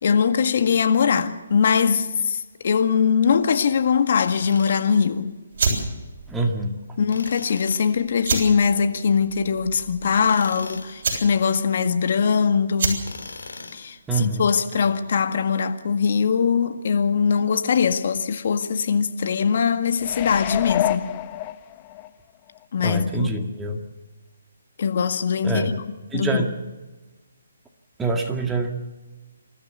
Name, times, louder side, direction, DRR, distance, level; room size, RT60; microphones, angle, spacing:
voice 1, 0.0-5.3 7.0-13.0 13.7-21.1 22.7-23.5 24.8-25.6 26.1-26.4, left 6 dB, 55° left, 1.8 m, -21 dB
Tools, 4.1-5.0 7.1-8.0 10.1-11.0 13.0-14.0, left 3 dB, 85° left, 3.6 m, -39 dB
sound 1, 5.5-15.0, right 4 dB, 55° right, 7.5 m, -30 dB
voice 2, 6.3-6.7 14.1-14.5 22.8-23.8 25.4-25.7 26.1-26.5 28.0-28.7, right 2 dB, 10° right, 2.0 m, -25 dB
sound 2, 20.0-22.1 22.6-22.7, left 14 dB, 25° left, 0.7 m, -28 dB
27.5 x 14.0 x 7.0 m
hypercardioid pair, 155°, 0 cm